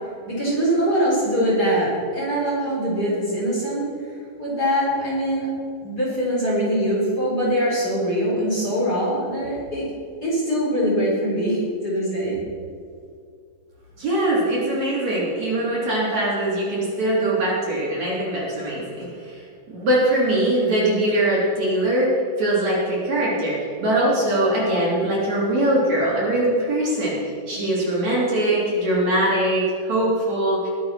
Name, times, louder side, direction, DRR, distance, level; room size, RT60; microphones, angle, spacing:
voice 1, 0.2-3.8 4.4-5.5 5.8-9.9 10.2-12.4, equal, 25° left, -6 dB, 4.5 m, -23 dB
voice 2, 14.0-19.4 19.7-22.1 22.4-30.7, right 1 dB, 45° right, -6 dB, 4.4 m, -22 dB
21.0 x 8.4 x 6.1 m, 2.3 s
omnidirectional pair, 4.6 m